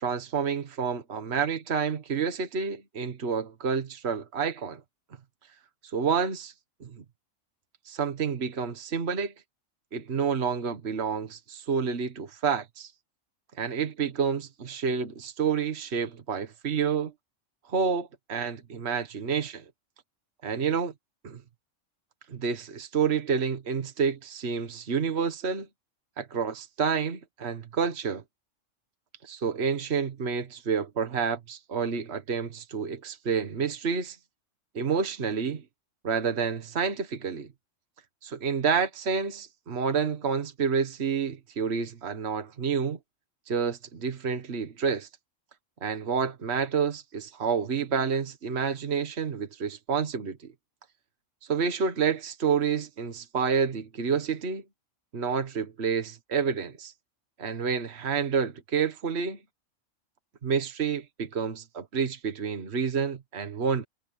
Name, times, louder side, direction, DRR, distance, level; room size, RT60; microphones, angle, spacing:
voice 1, 0.0-4.8 5.9-6.5 6.8-7.0 7.9-9.3 9.9-12.9 13.6-17.1 17.7-19.6 20.4-20.9 21.2-21.4 22.3-25.7 26.2-28.2 29.2-34.2 34.7-35.6 36.0-37.5 38.2-43.0 43.5-45.1 45.8-50.5 51.5-54.6 55.1-56.9 57.4-59.4 60.4-63.8, right 6 dB, 55° right, 1.7 m, -29 dB
omnidirectional pair, 1.3 m